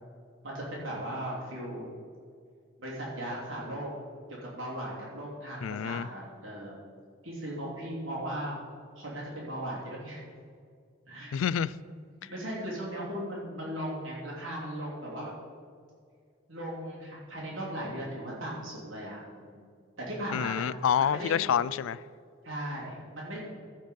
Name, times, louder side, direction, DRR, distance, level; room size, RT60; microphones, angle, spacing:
voice 1, 0.4-1.9 2.8-3.9 4.4-6.8 7.2-8.6 9.0-10.2 11.1-11.3 12.3-15.4 16.5-19.6 20.0-21.4 22.4-23.4, equal, 80° right, 2.9 m, -37 dB
voice 2, 5.6-6.1 11.3-11.7 20.3-22.0, left 8 dB, 80° left, 0.3 m, -28 dB
15.5 x 5.3 x 5.2 m
head